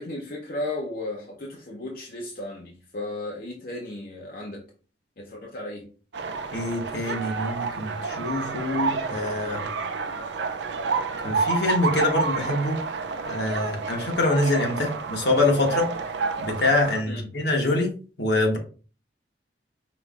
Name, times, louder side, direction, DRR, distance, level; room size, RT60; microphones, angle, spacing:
voice 1, 0.0-4.6 5.2-5.9 17.1-17.2, left 2 dB, 55° left, 0.7 m, -35 dB
sound 1, 6.1-17.0, right 4 dB, 80° right, 0.5 m, -29 dB
voice 2, 6.5-9.6 11.2-12.8 13.3-15.9 16.4-17.9 18.2-18.6, left 2 dB, 70° left, 1.1 m, -25 dB
5.2 x 3.1 x 2.4 m
head